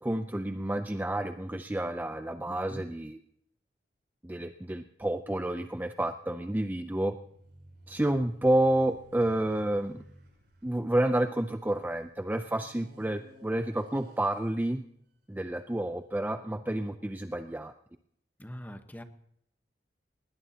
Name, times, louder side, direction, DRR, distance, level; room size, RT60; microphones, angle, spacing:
voice 1, 0.0-3.2 4.2-7.1 7.9-10.0 10.6-14.8 15.3-17.7, right 1 dB, 10° right, 8 dB, 0.5 m, -30 dB
voice 2, 2.5-2.8 18.4-19.0, equal, 10° left, 8 dB, 1.1 m, -43 dB
sound 1, 6.9-11.8 12.4-14.6, right 1 dB, 75° right, 7.8 m, -55 dB
20.5 x 18.0 x 2.9 m, 0.72 s
head